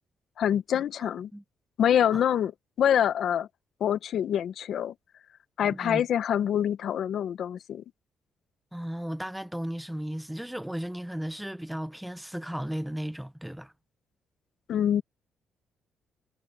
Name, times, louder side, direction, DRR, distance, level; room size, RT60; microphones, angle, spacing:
voice 1, 0.4-1.3 1.8-2.5 2.8-3.5 3.8-4.9 5.6-7.8 14.7-15.0, left 9 dB, 70° left, 1.2 m, -25 dB
voice 2, 5.6-6.1 8.7-13.7, equal, 5° right, 0.8 m, -35 dB
cardioid pair, 90°, 0 cm